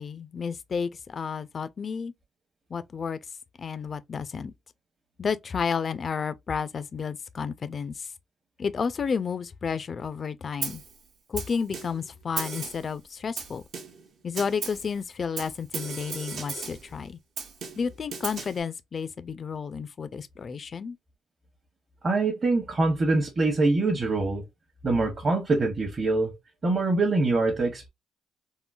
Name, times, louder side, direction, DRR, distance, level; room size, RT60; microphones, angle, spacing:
voice 1, 0.0-2.1 2.7-3.2 3.6-4.5 5.2-8.1 8.6-10.8 11.3-13.6 14.2-17.2 17.8-21.0, left 6 dB, 45° left, 0.3 m, -31 dB
Snare drum, 10.6-10.9 11.4-12.1 12.4-12.9 13.4-14.1 14.4-14.9 15.4-16.9 17.4-18.6, right 5 dB, 65° right, 0.7 m, -36 dB
voice 2, 22.0-24.4 24.8-26.4 26.6-27.9, right 3 dB, 35° right, 0.8 m, -24 dB
3.7 x 2.1 x 2.3 m
cardioid pair, 90°, 0 cm